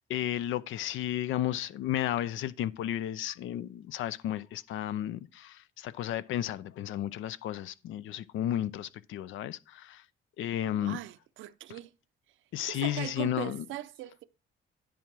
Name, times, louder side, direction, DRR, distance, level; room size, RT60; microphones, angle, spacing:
voice 1, 0.1-10.0 10.4-11.0 12.5-13.6, left 12 dB, 80° left, 0.5 m, -33 dB
voice 2, 10.6-11.9 12.6-14.2, right 13 dB, 80° right, 0.6 m, -40 dB
10.5 x 3.7 x 6.1 m
cardioid pair, 90°, 20 cm